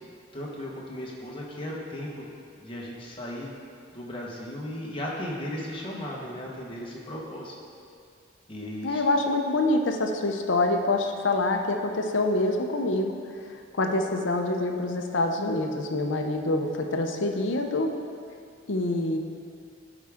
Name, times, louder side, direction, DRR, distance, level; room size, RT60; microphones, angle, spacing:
voice 1, 0.3-2.3 2.6-3.5 3.9-7.5 8.5-9.0, left 1 dB, 25° left, -4 dB, 1.3 m, -36 dB
voice 2, 8.6-13.1 13.8-17.9 18.7-19.2, left 2 dB, 75° left, 4 dB, 0.7 m, -26 dB
13.0 x 5.0 x 3.6 m, 2.3 s
head